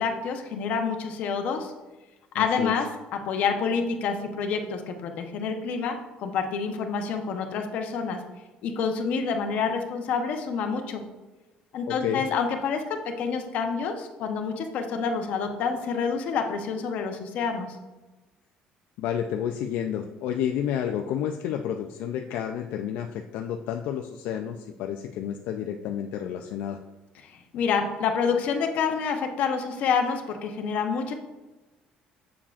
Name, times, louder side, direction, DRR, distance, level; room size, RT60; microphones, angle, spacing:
voice 1, 0.0-1.7 2.3-2.9 3.2-8.2 8.6-11.0 11.7-17.8 27.3-31.1, left 5 dB, 55° left, 5 dB, 0.8 m, -28 dB
voice 2, 2.3-2.7 11.9-12.2 19.0-26.8, left 9 dB, 75° left, 4 dB, 0.4 m, -30 dB
7.2 x 7.1 x 2.4 m, 1.1 s
cardioid pair, 170°, 3 cm